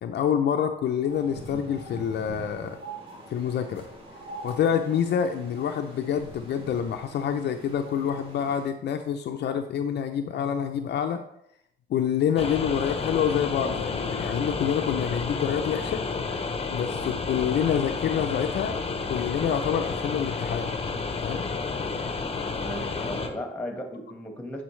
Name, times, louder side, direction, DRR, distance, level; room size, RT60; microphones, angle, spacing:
voice 1, 0.0-2.8 3.3-3.9 4.4-11.2 11.9-16.0 16.7-20.7 21.2-21.4, left 8 dB, 60° left, 6 dB, 0.5 m, -27 dB
sound 1, 1.0-8.6, right 1 dB, 85° right, 2.3 m, -43 dB
sound 2, 12.4-23.3, left 4 dB, 30° left, 0.7 m, -31 dB
voice 2, 22.6-24.6, equal, 5° left, 3 dB, 1.4 m, -35 dB
9.4 x 4.0 x 3.2 m, 0.73 s
cardioid pair, 90°, 20 cm